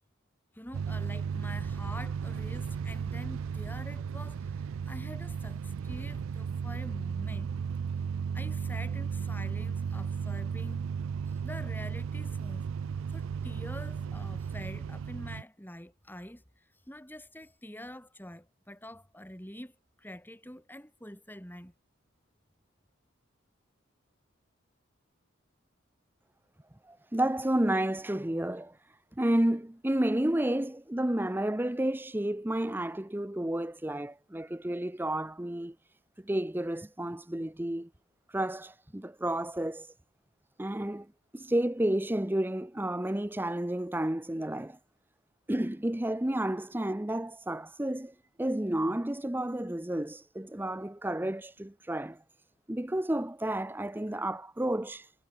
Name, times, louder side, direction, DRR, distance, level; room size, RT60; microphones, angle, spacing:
voice 1, 0.5-7.6 8.3-10.8 11.4-12.6 13.1-21.7, left 1 dB, 10° left, 7.3 m, -46 dB
sound 1, 0.7-15.4, right 6 dB, 75° right, 0.4 m, -35 dB
voice 2, 26.9-28.8 29.2-35.7 36.2-37.9 38.3-39.9 40.6-41.1 41.3-44.8 45.5-52.2 52.7-55.1, right 1 dB, 10° right, 0.6 m, -31 dB
head